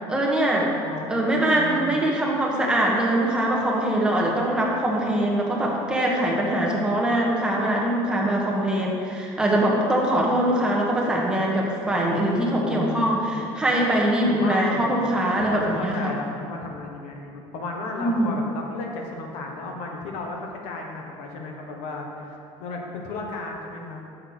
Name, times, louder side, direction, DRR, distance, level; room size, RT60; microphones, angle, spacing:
voice 1, 0.1-0.7 1.1-16.1 18.0-18.3, right 1 dB, 10° right, -3 dB, 1.1 m, -23 dB
voice 2, 0.8-2.0 12.6-13.5 14.2-15.0 15.3-24.0, left 3 dB, 70° left, 1 dB, 1.3 m, -34 dB
6.6 x 6.5 x 6.2 m, 2.6 s
cardioid pair, 150°, 11 cm